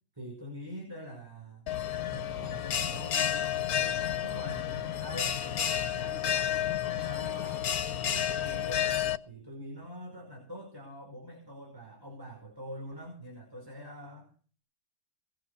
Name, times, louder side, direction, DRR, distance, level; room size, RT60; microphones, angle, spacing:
voice 1, 0.2-1.7 2.1-6.4 6.9-7.7 8.0-8.9 9.3-14.3, equal, 15° right, 0 dB, 5.2 m, -45 dB
Bell, 1.7-9.2, left 9 dB, 80° left, 1.5 m, -31 dB
20.5 x 7.9 x 6.8 m, 0.41 s
omnidirectional pair, 1.5 m